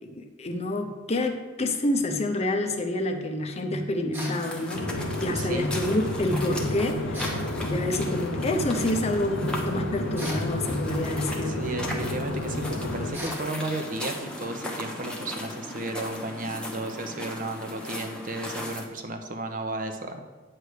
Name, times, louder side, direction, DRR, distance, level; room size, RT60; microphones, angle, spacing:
voice 1, 0.0-4.9 5.2-11.6, left 1 dB, 35° left, 4 dB, 0.6 m, -28 dB
sound 1, 4.1-4.4 7.1-7.5 10.2-10.5 13.1-13.5, equal, 10° right, 1.4 m, -37 dB
sound 2, 4.3-18.8, left 1 dB, 5° left, 0.9 m, -38 dB
sound 3, 4.7-13.1, left 1 dB, 75° left, 0.7 m, -31 dB
voice 2, 5.3-5.7 11.4-20.3, right 2 dB, 45° right, 6 dB, 0.7 m, -34 dB
9.2 x 3.3 x 6.5 m, 1.3 s
head